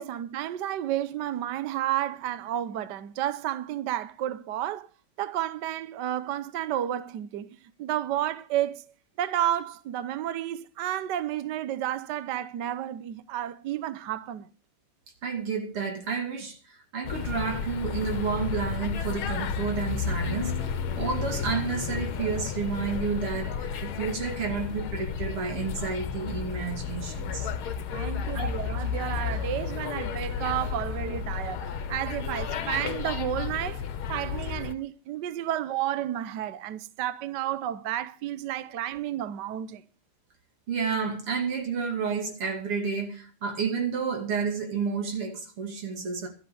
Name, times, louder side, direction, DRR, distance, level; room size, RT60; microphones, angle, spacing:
voice 1, 0.0-4.9 5.2-8.9 9.2-14.5 27.9-33.8 34.1-39.8, right 12 dB, 65° right, 1.2 m, -31 dB
voice 2, 15.2-27.5 28.3-28.5 40.7-46.3, right 5 dB, 80° right, 3.4 m, -31 dB
sound 1, 17.0-34.7, left 6 dB, 75° left, 1.8 m, -32 dB
12.5 x 8.1 x 7.7 m
omnidirectional pair, 2.4 m